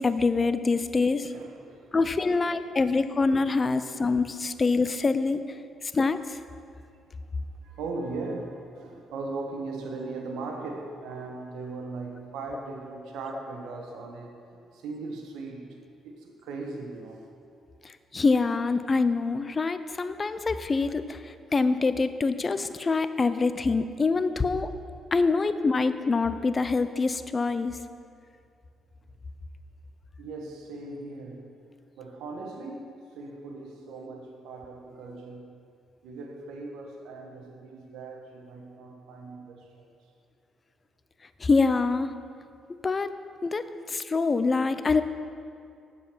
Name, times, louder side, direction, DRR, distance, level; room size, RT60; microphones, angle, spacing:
voice 1, 0.0-1.3 1.9-5.4 5.9-6.2 18.1-21.2 21.5-24.7 25.1-27.8 41.4-42.1 42.8-43.1 43.4-45.0, left 4 dB, 30° left, 12 dB, 0.5 m, -25 dB
voice 2, 1.3-2.0 2.8-3.0 7.6-14.4 14.7-17.2 30.2-31.5 32.0-35.6 36.0-39.9, right 3 dB, 90° right, 2 dB, 1.2 m, -39 dB
7.8 x 7.4 x 6.1 m, 2.4 s
cardioid pair, 90°, 0 cm